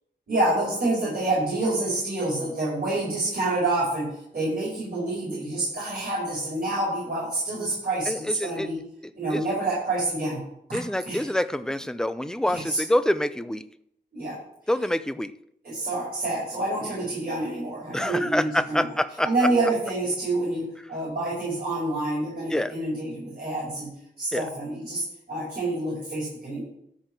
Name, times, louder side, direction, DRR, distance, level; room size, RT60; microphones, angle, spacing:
voice 1, 0.3-8.8 9.2-10.4 10.7-11.3 12.5-12.8 14.1-14.4 15.6-18.9 19.2-23.9 24.2-26.6, right 2 dB, 55° right, -7 dB, 4.9 m, -27 dB
voice 2, 8.1-8.7 9.3-9.4 10.7-13.6 14.7-15.3 17.9-19.3 22.5-22.7 24.3-24.5, left 1 dB, 5° left, 13 dB, 0.5 m, -26 dB
13.0 x 4.7 x 6.5 m, 0.73 s
wide cardioid pair, 95°, 18 cm